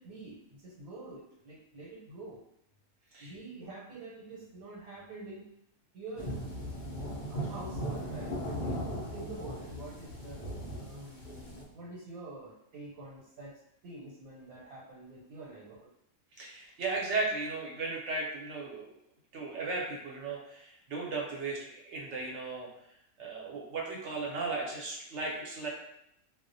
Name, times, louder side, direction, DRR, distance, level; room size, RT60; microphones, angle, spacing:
voice 1, 0.0-2.4 3.2-5.5 5.9-6.4 7.3-10.4 10.8-15.9, right 2 dB, 85° right, -6 dB, 1.1 m, -46 dB
sound 1, 6.2-11.6, equal, 75° left, 0.4 m, -38 dB
voice 2, 16.4-18.9 19.3-22.7 23.2-25.7, right 3 dB, 65° right, -2 dB, 0.8 m, -36 dB
2.3 x 2.1 x 2.5 m, 0.77 s
omnidirectional pair, 1.5 m